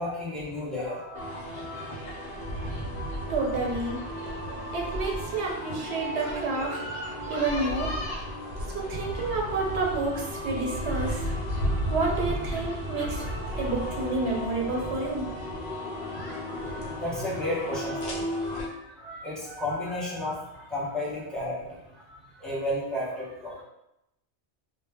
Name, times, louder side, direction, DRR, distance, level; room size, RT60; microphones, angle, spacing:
voice 1, 0.0-1.9 16.5-23.6, left 1 dB, ahead, -8 dB, 0.6 m, -33 dB
sound 1, 1.1-18.7, equal, 60° left, 0.8 m, -33 dB
voice 2, 3.3-4.0 4.7-6.9 7.3-8.0 8.7-11.3 11.9-13.3 13.6-15.3, right 3 dB, 80° right, 0 dB, 0.9 m, -29 dB
2.2 x 2.0 x 3.3 m, 0.86 s
omnidirectional pair, 1.1 m